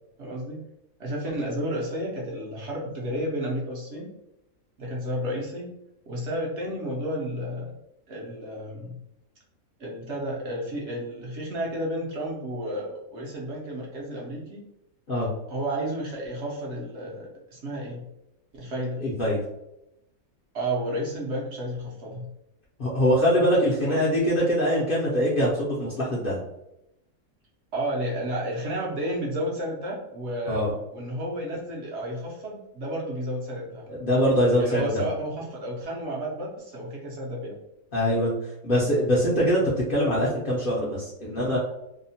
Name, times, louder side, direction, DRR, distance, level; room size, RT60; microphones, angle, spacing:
voice 1, 0.2-0.6 1.0-4.1 4.8-5.7 6.1-7.7 8.1-9.0 9.8-14.6 15.5-18.1 18.5-19.0 20.5-22.3 23.8-24.0 27.7-33.9 34.6-37.6, right 1 dB, 60° right, -3 dB, 0.8 m, -32 dB
voice 2, 19.0-19.4 22.8-26.4 30.5-30.7 34.0-35.1 37.9-38.3 38.6-39.6 39.9-41.6, equal, 55° left, -6 dB, 0.6 m, -23 dB
2.8 x 2.1 x 2.7 m, 0.86 s
omnidirectional pair, 1.5 m